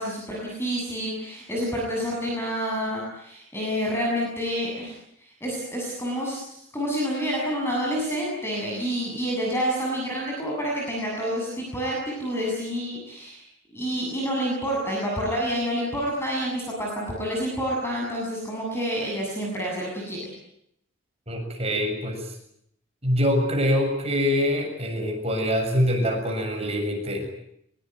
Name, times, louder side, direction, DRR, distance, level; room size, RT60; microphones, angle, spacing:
voice 1, 0.0-20.2, equal, 10° left, -2 dB, 7.7 m, -28 dB
voice 2, 21.3-22.3 23.0-27.3, equal, 30° right, 3 dB, 7.0 m, -24 dB
24.0 x 23.5 x 9.2 m, 0.74 s
head